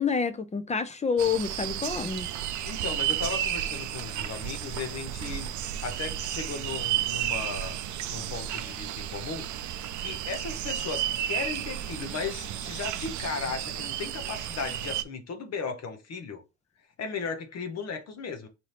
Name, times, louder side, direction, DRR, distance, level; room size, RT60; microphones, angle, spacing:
voice 1, 0.0-2.3, left 6 dB, 25° left, 0.5 m, -28 dB
sound 1, 1.2-15.0, right 11 dB, 75° right, 0.5 m, -32 dB
voice 2, 2.6-5.5 5.8-7.8 8.1-16.4 17.0-18.5, left 5 dB, 55° left, 0.8 m, -36 dB
4.3 x 2.7 x 3.2 m
cardioid pair, 90°, 30 cm